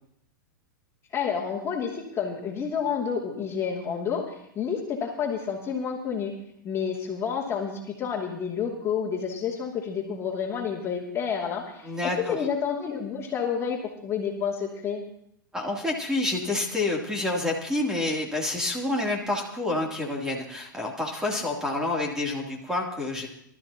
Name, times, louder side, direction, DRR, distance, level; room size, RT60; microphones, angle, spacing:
voice 1, 1.1-6.3 6.6-15.0, left 7 dB, 25° left, -2 dB, 2.7 m, -29 dB
voice 2, 11.8-12.4 15.5-23.3, left 2 dB, 5° right, -1 dB, 3.1 m, -28 dB
24.0 x 13.5 x 3.0 m, 0.73 s
hypercardioid pair, 120°, 11 cm